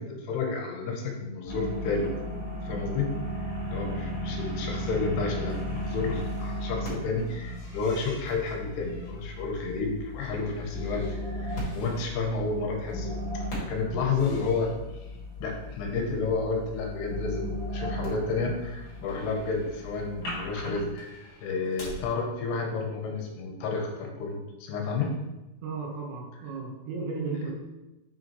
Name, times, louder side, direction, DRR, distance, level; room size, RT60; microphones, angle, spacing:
voice 1, 0.0-2.1 2.6-3.1 3.7-13.2 13.6-14.7 15.4-25.2, left 4 dB, 80° left, 1 dB, 2.8 m, -31 dB
sound 1, 1.5-20.9, left 1 dB, 45° left, 2.6 m, -36 dB
sound 2, 5.5-12.1 14.1-15.2 15.5-15.6 15.8-15.9 18.4-22.1, equal, 60° left, 1.7 m, -52 dB
voice 2, 25.6-27.5, right 4 dB, 80° right, -2 dB, 3.3 m, -34 dB
7.3 x 5.5 x 3.1 m, 1.0 s
omnidirectional pair, 5.2 m